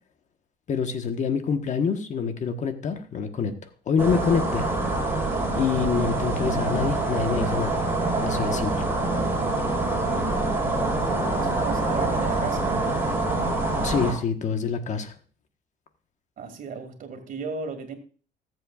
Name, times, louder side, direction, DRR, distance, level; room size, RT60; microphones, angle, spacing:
voice 1, 0.7-3.5 3.9-4.6 5.6-7.8 8.2-8.7 13.8-15.1, left 6 dB, 45° left, 7 dB, 1.2 m, -26 dB
sound 1, 4.0-14.1, right 2 dB, 15° right, 4.0 m, -25 dB
voice 2, 11.4-13.0 16.4-17.9, right 5 dB, 55° right, 7 dB, 2.2 m, -35 dB
19.5 x 7.7 x 2.4 m, 0.39 s
cardioid pair, 110°, 17 cm